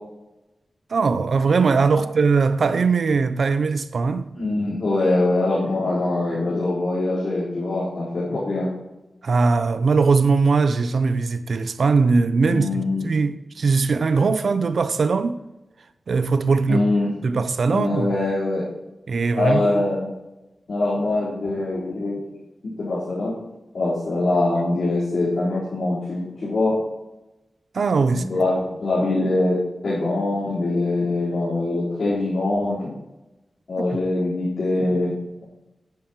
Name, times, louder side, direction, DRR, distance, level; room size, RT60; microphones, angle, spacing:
voice 1, 0.9-4.4 9.2-12.7 13.0-15.4 16.1-16.8 17.2-18.1 19.1-19.8 27.7-28.2, right 4 dB, 70° right, 0.6 m, -20 dB
voice 2, 4.3-8.7 12.5-13.1 16.7-17.1 17.7-18.6 19.4-20.1 20.7-22.2 22.8-23.3 23.7-26.8 28.1-32.9 33.7-35.1, left 2 dB, 75° left, 4.4 m, -23 dB
13.0 x 10.5 x 3.2 m
wide cardioid pair, 110°, 0 cm